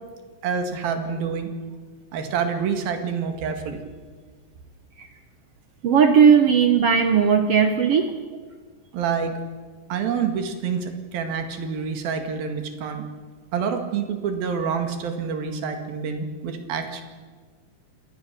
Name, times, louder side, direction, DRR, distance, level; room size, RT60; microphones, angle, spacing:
voice 1, 0.4-1.5 2.1-3.8 8.9-9.4 9.9-13.1 13.5-17.0, right 6 dB, 90° right, 6 dB, 3.8 m, -27 dB
voice 2, 5.8-8.1, right 6 dB, 70° right, 6 dB, 1.5 m, -17 dB
26.5 x 19.0 x 6.8 m, 1.5 s
omnidirectional pair, 4.1 m